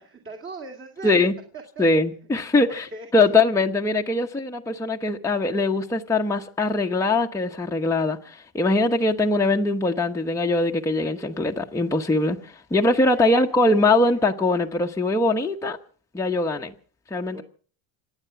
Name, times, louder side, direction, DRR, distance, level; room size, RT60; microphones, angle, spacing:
voice 1, 0.0-1.2 1.5-1.9 2.7-3.3 13.1-13.7 14.1-14.2 17.3-17.4, right 3 dB, 30° right, 2.5 m, -40 dB
voice 2, 1.0-1.3 1.8-2.8 3.1-15.8 16.1-16.7 17.1-17.4, left 2 dB, 5° left, 1.0 m, -22 dB
26.5 x 8.9 x 5.9 m
cardioid pair, 110°, 43 cm